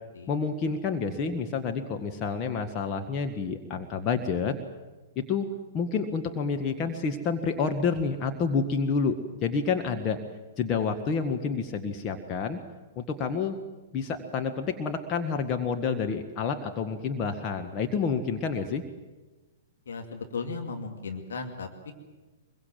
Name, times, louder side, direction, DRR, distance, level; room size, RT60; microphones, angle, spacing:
voice 1, 0.3-4.5 5.1-5.5 5.7-10.2 10.6-12.6 12.9-13.6 13.9-18.8, left 5 dB, 30° left, 4 dB, 1.6 m, -29 dB
voice 2, 19.9-21.9, left 4 dB, 60° left, 4 dB, 2.6 m, -36 dB
24.0 x 22.5 x 7.8 m, 1.2 s
figure-of-eight pair, 110°, 0 cm